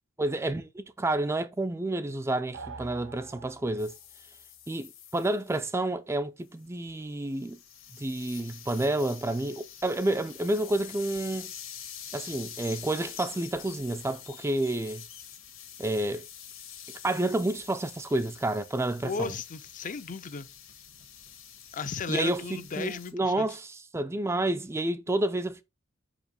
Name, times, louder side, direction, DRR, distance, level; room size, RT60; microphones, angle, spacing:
voice 1, 0.2-3.9 4.7-7.6 8.0-11.5 12.1-15.0 15.8-16.2 17.0-19.3 22.1-25.6, right 1 dB, 15° right, 0.4 m, -29 dB
sound 1, 2.5-4.0, right 4 dB, 65° right, 0.9 m, -44 dB
sound 2, 3.8-5.7 6.5-23.1, left 9 dB, 75° left, 1.6 m, -46 dB
voice 2, 19.0-20.5 21.7-23.5, left 5 dB, 40° left, 0.5 m, -35 dB
5.5 x 4.9 x 5.2 m
head